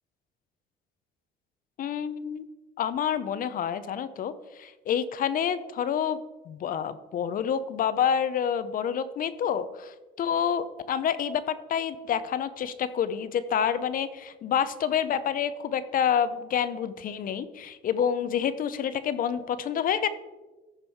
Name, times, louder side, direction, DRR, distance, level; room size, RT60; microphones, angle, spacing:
voice 1, 1.8-2.4 2.8-6.2 6.5-20.1, left 8 dB, 50° left, 13 dB, 0.6 m, -28 dB
14.5 x 5.3 x 4.6 m, 1.2 s
cardioid pair, 115°, 18 cm